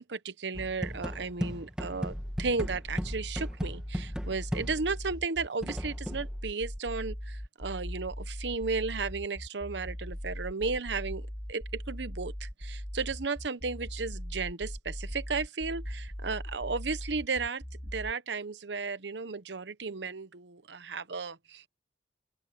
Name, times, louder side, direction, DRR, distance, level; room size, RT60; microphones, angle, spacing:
voice 1, 0.0-17.6 17.9-21.7, right 4 dB, 80° right, 0.9 m, -34 dB
sound 1, 0.5-5.0 5.6-6.3, equal, 5° right, 1.6 m, -37 dB
sound 2, 2.1-18.1, equal, 10° left, 1.2 m, -39 dB
open air
head